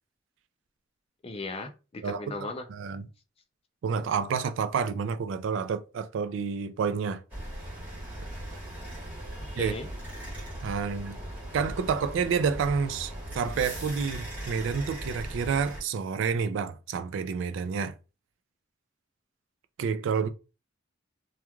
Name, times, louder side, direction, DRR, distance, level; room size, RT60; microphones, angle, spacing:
voice 1, 1.2-2.6 9.4-9.9, left 2 dB, 30° left, 0.4 m, -37 dB
voice 2, 2.0-2.4 2.7-3.1 3.8-7.2 9.5-9.7 10.6-11.2 11.5-17.9 19.8-20.3, right 6 dB, 65° right, 0.3 m, -29 dB
sound 1, 7.3-15.8, right 1 dB, 10° right, 1.3 m, -39 dB
3.0 x 2.3 x 2.2 m
head